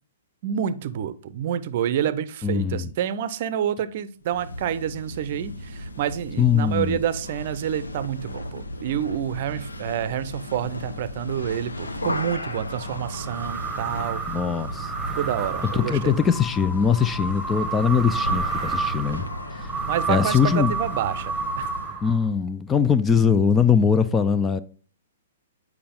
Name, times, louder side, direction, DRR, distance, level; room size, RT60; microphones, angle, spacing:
voice 1, 0.4-14.2 15.1-16.3 19.9-22.0, right 10 dB, 45° right, 0.6 m, -28 dB
voice 2, 2.4-2.9 6.4-7.0 14.3-14.9 15.7-19.3 19.6-19.7 20.1-20.7 22.0-24.6, left 6 dB, 15° left, 0.4 m, -21 dB
sound 1, 4.2-22.0, left 1 dB, 75° left, 0.8 m, -36 dB
sound 2, 12.7-22.5, right 4 dB, 5° right, 1.2 m, -30 dB
8.5 x 4.7 x 3.7 m
figure-of-eight pair, 115°, 0 cm